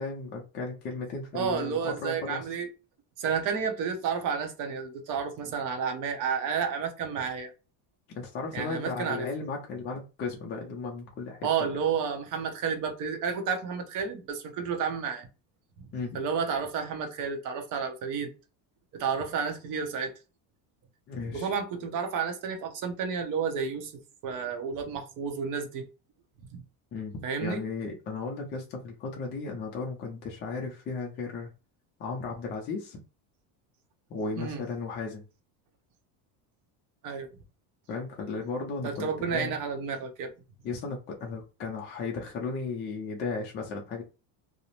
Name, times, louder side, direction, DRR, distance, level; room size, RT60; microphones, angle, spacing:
voice 1, 0.0-2.4 8.1-11.5 15.9-16.2 21.1-21.5 26.9-31.5 32.0-33.0 34.1-35.2 37.9-39.5 40.6-44.0, left 4 dB, 25° left, 0.3 m, -35 dB
voice 2, 1.3-2.7 3.2-7.5 8.5-9.3 11.4-15.3 16.1-18.3 18.9-20.1 21.3-23.9 24.2-25.9 26.5-26.6 27.2-27.6 34.4-34.6 37.0-37.3 38.8-40.3, right 6 dB, 45° right, 0.7 m, -31 dB
2.5 x 2.0 x 2.9 m
cardioid pair, 145°, 45 cm